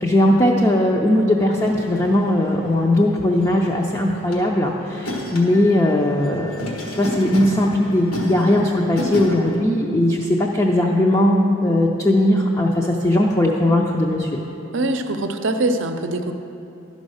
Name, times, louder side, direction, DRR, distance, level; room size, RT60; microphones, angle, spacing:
voice 1, 0.0-6.7 7.0-14.4, left 1 dB, 15° left, -2 dB, 0.5 m, -18 dB
sound 1, 1.6-9.6, equal, 90° left, 1.5 m, -32 dB
voice 2, 14.7-16.3, right 2 dB, 60° right, 6 dB, 0.6 m, -23 dB
11.5 x 5.3 x 6.3 m, 2.8 s
head